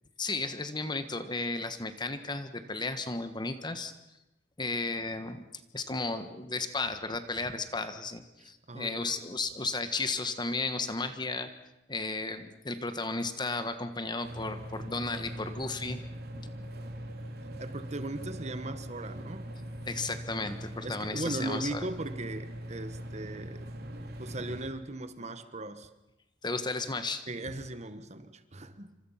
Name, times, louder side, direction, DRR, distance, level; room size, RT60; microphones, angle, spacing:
voice 1, 0.2-3.9 4.6-5.4 5.7-11.5 11.9-16.0 19.8-21.8 26.4-27.3, left 3 dB, 25° left, 9 dB, 1.5 m, -34 dB
voice 2, 8.4-9.1 17.6-19.5 20.8-23.7 24.2-25.9 27.3-29.0, right 2 dB, 40° right, 11 dB, 1.3 m, -38 dB
sound 1, 14.2-24.7, right 1 dB, 60° right, 3.2 m, -41 dB
27.5 x 25.5 x 5.8 m, 0.94 s
head